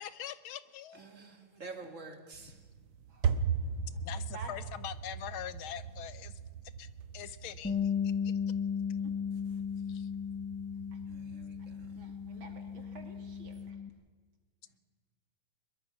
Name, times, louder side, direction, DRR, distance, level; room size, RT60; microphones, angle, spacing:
voice 1, 0.0-1.0 4.0-6.3 6.8-6.9 7.1-8.3 9.9-10.1, left 10 dB, 75° left, 1.6 m, -43 dB
voice 2, 0.9-2.6 11.1-12.0, right 3 dB, 35° right, 2.5 m, -48 dB
sound 1, 2.3-13.7, right 6 dB, 90° right, 2.0 m, -39 dB
voice 3, 4.2-4.5 9.0-9.1 10.9-11.0 12.0-13.8, right 4 dB, 65° right, 3.4 m, -51 dB
Bass guitar, 7.6-13.9, left 7 dB, 10° left, 0.6 m, -35 dB
22.0 x 22.0 x 6.1 m
omnidirectional pair, 2.4 m